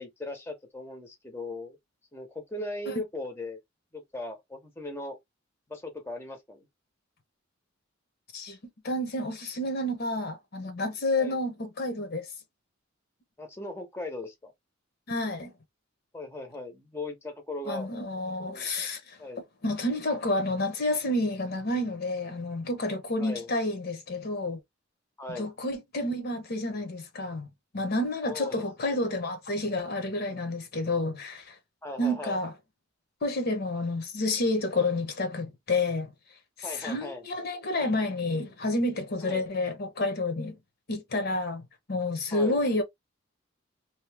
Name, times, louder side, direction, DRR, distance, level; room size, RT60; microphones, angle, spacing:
voice 1, 0.0-1.8 2.1-3.6 3.9-5.2 5.7-6.6 11.2-11.4 13.4-14.5 16.1-17.9 18.5-18.7 19.2-19.4 23.2-23.5 25.2-25.5 28.2-28.6 31.8-32.4 36.6-37.2 39.2-39.5 42.3-42.6, left 2 dB, 10° left, 0.8 m, -38 dB
voice 2, 8.8-12.3 15.1-15.5 17.7-19.2 19.6-24.6 25.4-27.5 27.7-31.6 32.0-32.5 33.2-36.1 36.6-40.6 40.9-41.6 41.9-42.8, left 2 dB, 50° left, 0.8 m, -29 dB
2.8 x 2.6 x 3.3 m
head